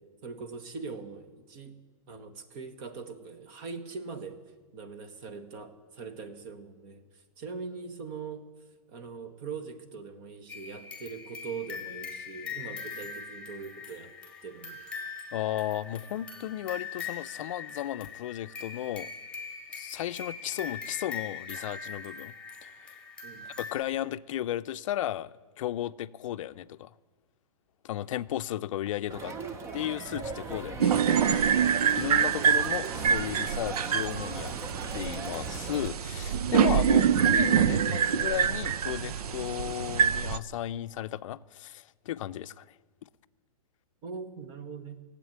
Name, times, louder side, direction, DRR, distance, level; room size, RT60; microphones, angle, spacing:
voice 1, 0.0-1.8 2.1-4.4 4.7-8.4 8.9-14.1 14.4-14.8 23.2-23.5 44.0-45.0, right 5 dB, 40° right, 1.4 m, -41 dB
sound 1, 10.5-23.8, left 5 dB, 5° left, 1.7 m, -41 dB
voice 2, 15.3-19.1 19.7-22.3 22.6-22.7 23.5-26.9 27.8-29.3 29.7-31.5 32.0-34.5 34.9-42.7, left 13 dB, 60° left, 0.5 m, -34 dB
Crowd, 29.1-35.9, right 4 dB, 15° right, 0.6 m, -39 dB
sound 2, 30.8-40.4, right 8 dB, 90° right, 0.6 m, -25 dB
16.0 x 8.2 x 9.4 m
hypercardioid pair, 150°, 19 cm